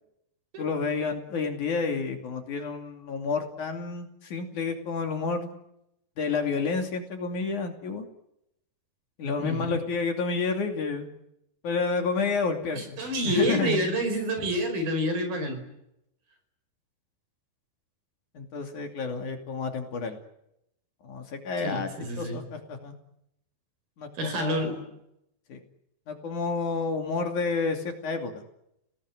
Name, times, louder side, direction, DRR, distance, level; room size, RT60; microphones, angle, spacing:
voice 1, 0.6-5.5 6.2-8.1 9.2-11.1 11.6-13.8 18.3-20.2 21.0-22.9 24.0-24.8 25.5-25.6 26.1-28.4, left 4 dB, 55° left, 5 dB, 4.0 m, -30 dB
voice 2, 9.4-9.8 12.8-15.6 21.6-22.4 24.2-24.8, equal, 70° right, 7 dB, 6.9 m, -28 dB
30.0 x 18.5 x 9.8 m, 0.83 s
omnidirectional pair, 4.3 m